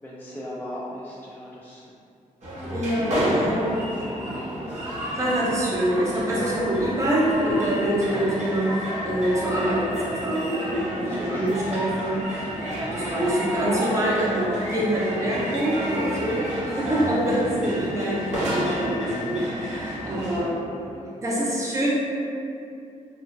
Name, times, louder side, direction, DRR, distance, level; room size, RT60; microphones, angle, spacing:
voice 1, 0.0-1.9 3.0-4.9 11.0-11.7 16.3-16.7 17.8-17.9 19.8-21.1, equal, 15° left, -6 dB, 0.3 m, -39 dB
sound 1, 2.4-20.4, equal, 55° right, 0.8 m, -30 dB
voice 2, 2.7-3.7 5.1-20.6 21.2-21.9, right 1 dB, 20° right, -6 dB, 0.6 m, -25 dB
2.7 x 2.2 x 2.5 m, 2.5 s
cardioid pair, 95°, 14 cm